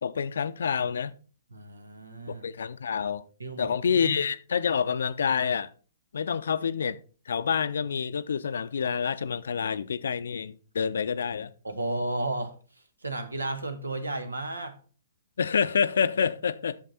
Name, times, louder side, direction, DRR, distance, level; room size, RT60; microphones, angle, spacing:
voice 1, 0.0-1.1 2.3-3.2 3.6-5.7 6.1-7.0 7.3-11.5 15.4-16.8, left 6 dB, 65° left, 0.5 m, -27 dB
voice 2, 1.5-2.5 3.4-4.1 11.6-12.5 13.0-14.8, right 2 dB, 80° right, 1.3 m, -33 dB
8.7 x 6.5 x 4.1 m
figure-of-eight pair, 120°, 0 cm